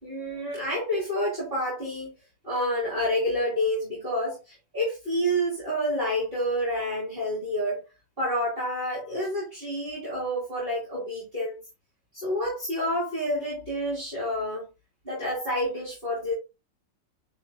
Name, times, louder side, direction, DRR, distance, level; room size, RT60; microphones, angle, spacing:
voice 1, 0.0-2.1 2.4-7.8 8.2-11.6 12.1-14.7 15.0-16.3, equal, 30° right, 4.1 m, -28 dB
10.5 x 5.0 x 2.4 m
omnidirectional pair, 2.0 m